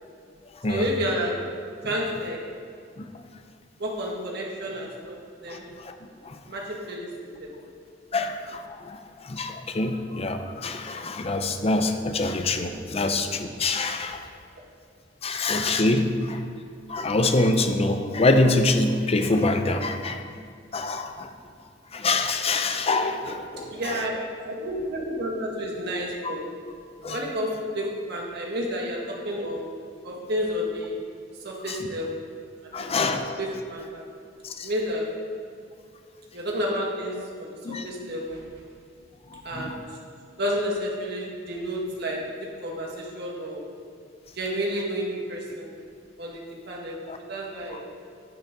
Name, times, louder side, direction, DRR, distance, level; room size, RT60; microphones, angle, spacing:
voice 1, 0.7-1.4 1.8-2.4 3.8-5.2 5.4-5.7 6.5-7.5 12.9-13.0 23.7-26.5 27.1-29.7 30.0-31.0 31.4-32.2 32.8-34.0 34.6-35.1 36.3-38.4 39.4-39.8 40.4-43.6 44.4-45.7 46.2-47.0 47.3-47.8, equal, 60° right, -2 dB, 1.8 m, -30 dB
voice 2, 5.5-5.9 6.2-6.4 8.1-14.2 15.2-16.4 16.9-20.2 20.7-21.3 21.9-24.0 26.2-26.4 26.7-26.8 27.0-27.2 31.7-31.9 32.7-33.4 34.4-34.7 37.6-37.9 39.3-39.8 47.1-47.2 47.7-47.8, left 2 dB, 35° left, 7 dB, 0.6 m, -25 dB
9.9 x 9.3 x 3.8 m, 2.3 s
head